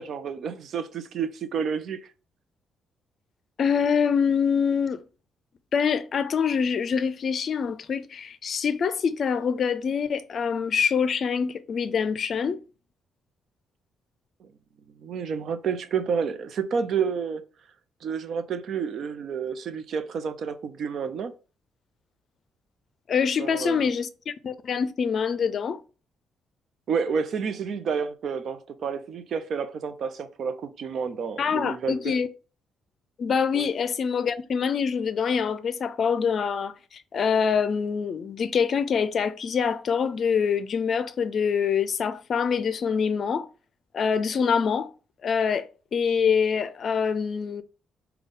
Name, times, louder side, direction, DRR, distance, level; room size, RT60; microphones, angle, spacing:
voice 1, 0.0-2.0 14.4-14.5 15.0-17.4 18.0-21.3 23.4-23.9 26.9-32.1 33.5-33.7, right 6 dB, 65° right, 0.6 m, -30 dB
voice 2, 3.6-5.0 5.7-12.6 23.1-25.8 31.4-32.3 33.2-43.5 43.9-44.9 45.2-47.6, left 6 dB, 55° left, 0.4 m, -25 dB
5.3 x 2.3 x 3.6 m
cardioid pair, 90°, 0 cm